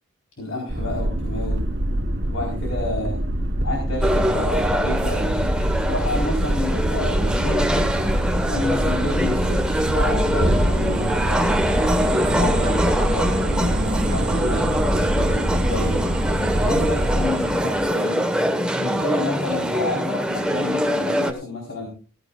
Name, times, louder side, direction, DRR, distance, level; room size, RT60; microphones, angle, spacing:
voice 1, 0.4-1.7 2.3-3.2 3.6-5.4 5.9-8.0 8.5-11.6 12.3-16.1 16.5-18.2 18.7-21.9, left 2 dB, 70° left, 0 dB, 4.4 m, -30 dB
sound 1, 0.7-17.2, right 1 dB, 55° right, 1.3 m, -25 dB
sound 2, 4.0-21.3, equal, 5° right, 1.3 m, -24 dB
sound 3, 6.3-17.9, right 1 dB, 40° right, 2.1 m, -32 dB
17.5 x 16.0 x 2.5 m, 0.35 s
head